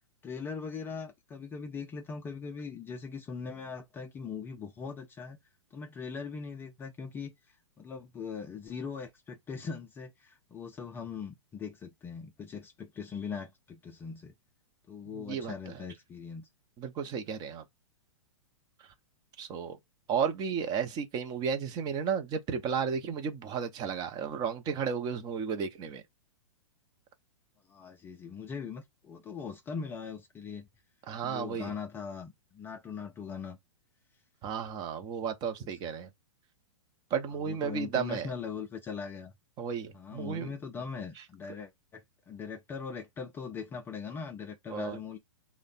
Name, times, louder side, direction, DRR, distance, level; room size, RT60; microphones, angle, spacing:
voice 1, 0.2-5.4 5.7-14.3 14.9-16.5 27.7-30.7 31.2-33.6 35.6-35.7 37.3-39.3 39.9-45.2, left 6 dB, 15° left, 0.4 m, -40 dB
voice 2, 15.1-15.7 16.8-17.6 19.4-19.8 20.1-26.0 31.1-31.7 34.4-36.1 37.1-38.3 39.6-40.5 44.7-45.0, right 7 dB, 25° right, 0.6 m, -33 dB
3.2 x 2.1 x 4.0 m
figure-of-eight pair, 105°, 16 cm